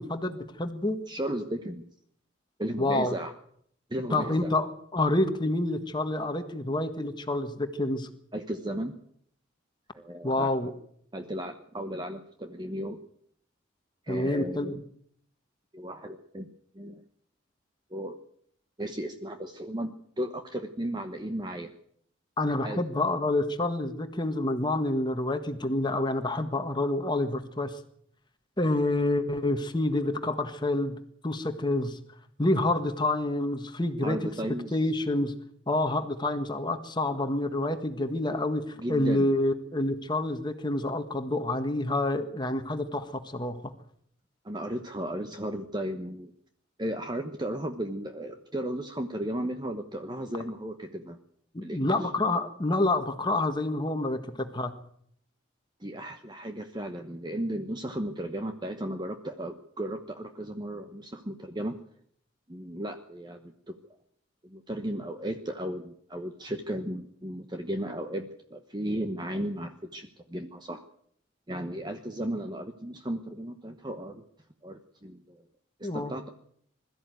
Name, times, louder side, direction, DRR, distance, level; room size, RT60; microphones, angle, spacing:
voice 1, 0.0-1.0 2.8-3.2 4.1-8.1 10.2-10.7 14.1-14.8 22.4-27.8 28.6-31.0 31.2-32.0 32.4-34.2 34.7-35.3 35.7-43.7 51.5-54.7 75.8-76.1, left 2 dB, 20° left, 7 dB, 1.6 m, -28 dB
voice 2, 1.1-1.9 2.6-3.3 3.9-4.5 8.3-8.9 9.9-10.7 11.1-13.0 14.0-14.8 15.7-16.5 16.7-17.0 17.9-18.2 18.8-21.7 22.6-22.8 34.0-34.8 38.8-39.3 44.4-46.3 46.8-51.2 51.6-52.1 55.8-61.8 62.5-63.8 64.4-70.8 71.5-74.2 74.6-75.4 75.8-76.3, right 1 dB, 20° right, 6 dB, 1.0 m, -35 dB
22.0 x 13.5 x 9.3 m, 0.67 s
head